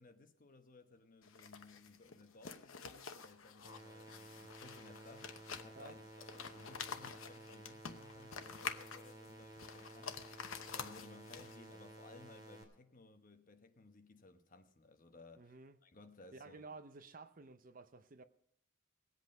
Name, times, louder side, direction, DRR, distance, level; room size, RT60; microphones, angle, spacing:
voice 1, 0.0-15.6 15.8-16.7, left 3 dB, 40° left, 1.0 m, -60 dB
sound 1, 1.2-11.8, left 6 dB, 90° left, 0.9 m, -48 dB
sound 2, 3.6-12.6, right 1 dB, 20° right, 2.6 m, -55 dB
voice 2, 15.4-15.8 16.3-18.2, right 3 dB, 45° right, 0.7 m, -53 dB
19.0 x 8.2 x 5.3 m
head